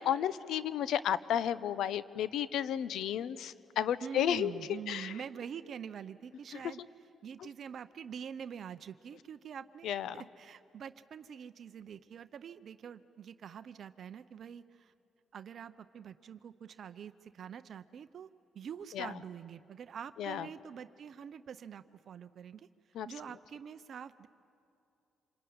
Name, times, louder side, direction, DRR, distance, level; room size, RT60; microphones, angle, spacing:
voice 1, 0.0-5.2 6.5-6.6 7.4-7.5 9.8-10.2 18.9-19.2 20.2-20.5 22.9-23.1, left 10 dB, 80° left, 16 dB, 0.7 m, -33 dB
voice 2, 4.0-6.8 7.2-14.9 15.3-18.3 18.5-22.7 23.1-24.3, right 8 dB, 60° right, 12 dB, 0.6 m, -45 dB
26.5 x 22.5 x 9.5 m, 2.6 s
cardioid pair, 90°, 0 cm